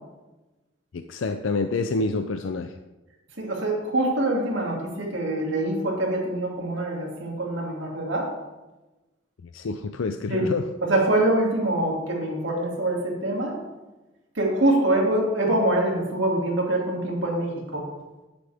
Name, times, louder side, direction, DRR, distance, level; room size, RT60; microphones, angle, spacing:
voice 1, 0.9-2.7 9.4-10.7, left 3 dB, 85° left, 8 dB, 0.5 m, -28 dB
voice 2, 3.4-8.3 10.3-10.4 10.9-13.6 14.4-17.8, right 1 dB, 75° right, -1 dB, 2.5 m, -24 dB
9.9 x 9.4 x 3.5 m, 1.1 s
head